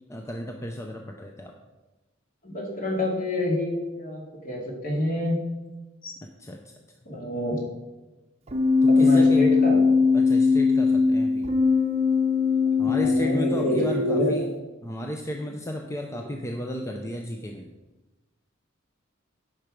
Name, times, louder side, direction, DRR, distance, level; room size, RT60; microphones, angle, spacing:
voice 1, 0.1-1.5 6.4-6.7 8.8-9.4 10.1-11.5 12.8-14.5 14.8-17.7, left 1 dB, 15° left, 2 dB, 0.6 m, -34 dB
voice 2, 2.4-5.4 6.0-6.1 7.1-7.6 8.9-9.8 12.8-14.5, left 1 dB, 45° left, -2 dB, 2.5 m, -28 dB
Keyboard (musical), 8.5-14.4, left 4 dB, 30° right, 0.8 m, -21 dB
10.0 x 5.9 x 5.1 m, 1.1 s
head